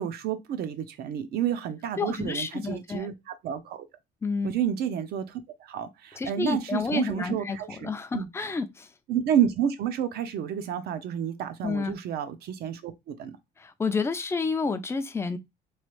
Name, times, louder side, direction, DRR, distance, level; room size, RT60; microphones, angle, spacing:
voice 1, 0.0-3.9 4.4-8.3 9.1-13.4, right 9 dB, 70° right, 0.6 m, -30 dB
voice 2, 2.0-3.1 4.2-4.5 6.2-8.9 11.6-11.9 13.6-15.4, left 4 dB, 15° left, 0.4 m, -30 dB
3.1 x 2.3 x 3.0 m
cardioid pair, 110°, 17 cm